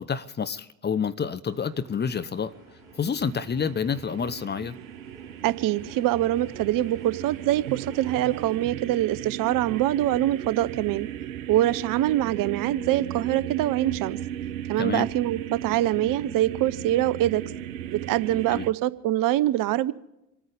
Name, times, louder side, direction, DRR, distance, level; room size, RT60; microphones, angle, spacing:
voice 1, 0.0-2.5 3.0-4.8 14.8-15.1 18.5-18.6, left 6 dB, 25° left, 0.9 m, -28 dB
sound 1, 1.4-8.6, left 1 dB, 90° left, 6.0 m, -53 dB
sound 2, 2.3-18.7, right 10 dB, 80° right, 1.0 m, -36 dB
voice 2, 5.4-11.1 11.5-14.2 14.7-17.4 17.9-19.9, right 14 dB, 55° right, 0.8 m, -24 dB
27.5 x 9.6 x 5.1 m
hypercardioid pair, 60°, 41 cm